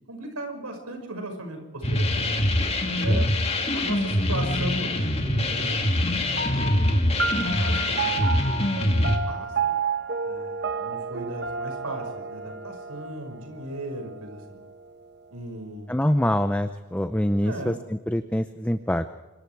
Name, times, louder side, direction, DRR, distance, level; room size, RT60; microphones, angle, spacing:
voice 1, 0.1-2.3 2.8-3.3 3.7-6.0 6.6-7.3 7.6-8.3 9.3-9.7 10.2-14.6 15.3-16.1 17.4-17.8, right 1 dB, 85° right, 5 dB, 5.9 m, -37 dB
sound 1, 1.8-9.2, left 1 dB, 25° left, 2.5 m, -24 dB
sound 2, 6.4-15.2, right 5 dB, 50° right, 1.1 m, -31 dB
voice 2, 15.9-19.2, left 1 dB, 5° left, 9 dB, 0.6 m, -25 dB
26.0 x 22.0 x 4.8 m, 1.2 s
head